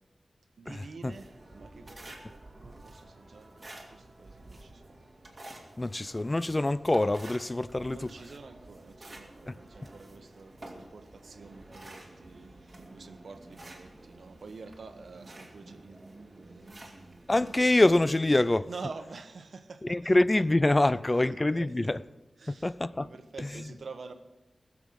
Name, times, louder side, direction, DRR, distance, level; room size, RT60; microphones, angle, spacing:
voice 1, 0.6-5.0 7.9-16.8 18.7-20.1 20.8-20.9 21.2-22.1 22.4-24.1, right 4 dB, 85° right, 1.0 m, -48 dB
sound 1, 1.0-18.2, right 2 dB, 30° right, 2.4 m, -50 dB
voice 2, 5.8-8.1 9.5-9.6 17.3-18.7 19.8-22.0 22.5-23.1 23.4-23.7, left 2 dB, 25° left, 0.4 m, -25 dB
20.0 x 7.3 x 6.3 m
wide cardioid pair, 95°, 0 cm